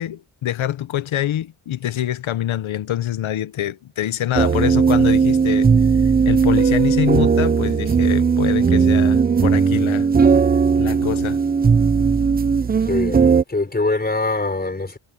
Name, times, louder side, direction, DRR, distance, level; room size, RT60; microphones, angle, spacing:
voice 1, 0.0-5.7 6.2-10.1 10.3-10.4 10.8-11.4, left 12 dB, 85° left, 1.0 m, -25 dB
sound 1, 4.4-13.4, right 5 dB, 20° right, 0.4 m, -17 dB
voice 2, 12.9-15.0, left 3 dB, 20° left, 4.1 m, -23 dB
wide cardioid pair, 120°, 47 cm